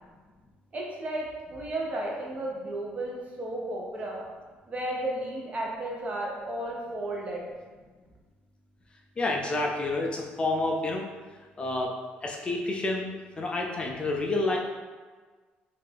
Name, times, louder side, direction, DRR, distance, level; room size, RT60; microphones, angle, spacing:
voice 1, 0.7-4.2 4.7-7.5, right 1 dB, 35° right, -2 dB, 0.8 m, -33 dB
voice 2, 9.2-11.0 11.6-11.9 12.2-14.6, left 2 dB, 25° left, 0 dB, 0.4 m, -29 dB
3.2 x 2.5 x 3.4 m, 1.4 s
cardioid pair, 110°, 4 cm